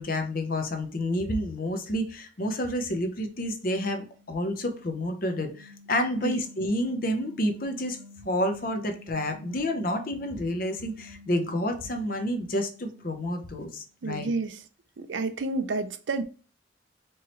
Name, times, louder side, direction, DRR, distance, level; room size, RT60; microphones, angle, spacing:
voice 1, 0.0-8.0 8.2-14.3, left 1 dB, 50° left, 0.7 m, -29 dB
sound 1, 3.7-13.9, left 3 dB, 65° left, 1.0 m, -51 dB
voice 2, 14.0-14.6 15.0-16.2, right 3 dB, 85° right, 0.5 m, -30 dB
4.6 x 3.0 x 3.0 m
head